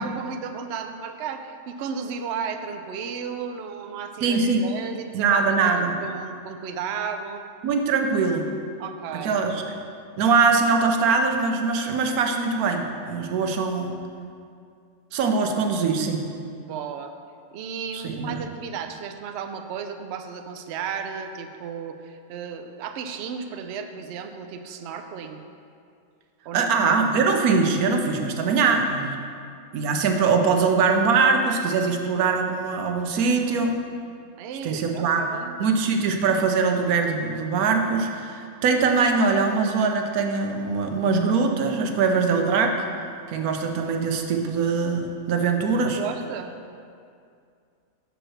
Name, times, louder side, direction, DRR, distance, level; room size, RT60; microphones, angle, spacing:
voice 1, 0.0-7.4 8.8-9.4 16.6-17.1 17.5-25.4 26.5-26.9 34.4-35.5 46.0-46.5, right 6 dB, 65° right, 7 dB, 0.7 m, -34 dB
voice 2, 4.2-4.6 5.1-5.9 7.6-8.5 9.1-9.6 10.2-13.9 15.1-16.2 17.9-18.4 26.5-29.2 29.7-33.8 34.6-35.2 35.6-42.8 43.3-46.0, right 4 dB, 90° right, 4 dB, 1.2 m, -22 dB
6.6 x 4.7 x 6.3 m, 2.3 s
omnidirectional pair, 1.5 m